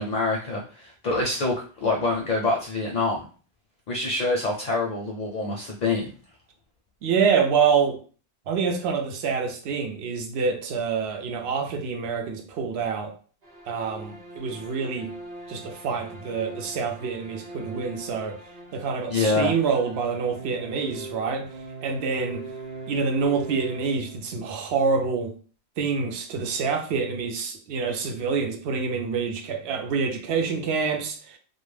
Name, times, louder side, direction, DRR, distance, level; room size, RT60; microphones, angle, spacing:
voice 1, 0.0-3.2 3.9-6.1 19.1-19.5, left 3 dB, 55° left, 0.5 m, -25 dB
voice 2, 7.0-8.0 8.5-13.1 13.7-15.1 15.5-18.4 18.7-21.5 21.8-22.4 22.9-25.3 25.8-31.4, right 5 dB, 75° right, 0.8 m, -26 dB
sound 1, 13.4-24.6, right 2 dB, 45° right, 0.7 m, -41 dB
2.2 x 2.1 x 3.1 m
omnidirectional pair, 1.1 m